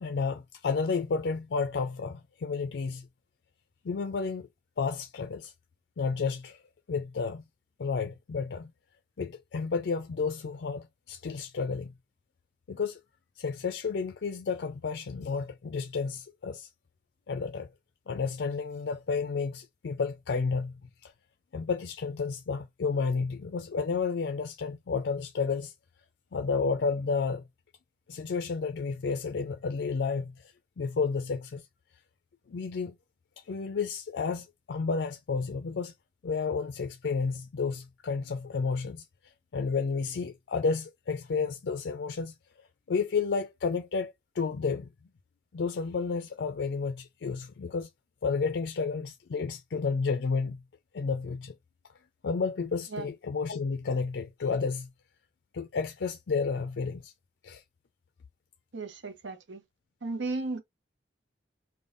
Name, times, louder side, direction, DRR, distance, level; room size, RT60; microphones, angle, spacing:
voice 1, 0.0-3.1 3.8-4.5 4.8-5.5 6.0-6.6 6.9-7.4 7.8-8.7 9.2-11.9 12.7-13.0 13.4-16.7 17.3-17.7 18.1-20.7 21.0-21.1 21.5-25.7 26.3-27.4 28.1-30.3 30.8-31.6 32.5-32.9 33.5-35.9 36.2-39.0 39.5-42.3 42.9-44.9 45.5-47.9 48.2-50.6 50.9-51.5 52.2-54.9 55.5-57.1 57.4-57.6, left 5 dB, 70° left, 0.4 m, -31 dB
voice 2, 58.7-59.6 60.0-60.6, right 3 dB, 85° right, 0.8 m, -35 dB
5.2 x 2.3 x 2.5 m
head